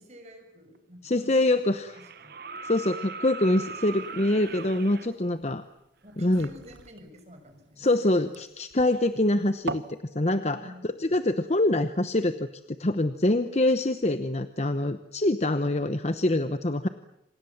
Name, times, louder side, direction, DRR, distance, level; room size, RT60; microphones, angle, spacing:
voice 1, 0.0-1.8 2.0-2.3 6.0-8.3 10.4-10.9, equal, 40° right, 5 dB, 6.4 m, -50 dB
sound 1, 0.7-0.8 1.9-5.1 6.8-6.9, right 4 dB, 55° right, 1.1 m, -40 dB
voice 2, 1.0-2.0 2.6-5.6 6.2-6.5 7.8-9.8 10.1-10.6 11.0-12.5 12.8-16.9, left 1 dB, 35° left, 10 dB, 1.0 m, -25 dB
sound 2, 3.5-10.0, right 3 dB, 75° right, 1.2 m, -42 dB
27.5 x 26.5 x 7.3 m, 0.85 s
head